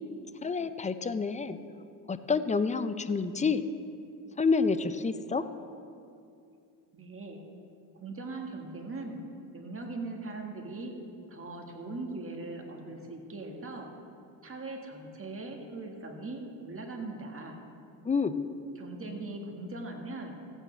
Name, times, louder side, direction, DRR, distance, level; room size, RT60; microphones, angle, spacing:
voice 1, 0.4-1.6 2.1-3.7 4.4-5.4 18.1-18.4, left 4 dB, 15° left, 12 dB, 0.4 m, -28 dB
voice 2, 6.9-7.4 7.9-9.2 9.5-10.9 11.3-13.9 14.4-17.6 18.7-20.4, right 2 dB, 30° right, 2 dB, 1.7 m, -40 dB
15.5 x 8.9 x 3.3 m, 2.4 s
supercardioid pair, 80°, 45 cm